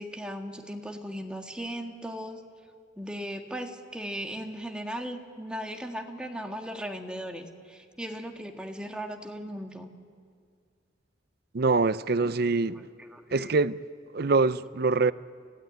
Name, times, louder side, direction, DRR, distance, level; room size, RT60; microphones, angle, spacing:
voice 1, 0.0-2.4 3.0-9.9 13.0-13.6, equal, 5° right, 1.7 m, -37 dB
voice 2, 11.5-12.8 13.3-13.8 14.1-15.1, right 3 dB, 55° right, 0.6 m, -24 dB
29.0 x 16.5 x 9.3 m
head